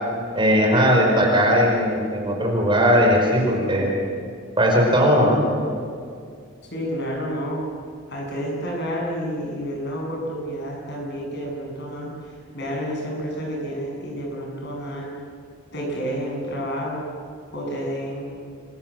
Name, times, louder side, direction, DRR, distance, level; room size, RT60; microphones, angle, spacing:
voice 1, 0.3-3.9 4.6-5.5, equal, 25° right, 0 dB, 5.1 m, -18 dB
voice 2, 6.6-7.6 8.1-15.1 15.7-17.0 17.5-18.2, equal, 55° left, -1 dB, 7.9 m, -30 dB
28.5 x 23.0 x 7.7 m, 2.3 s
head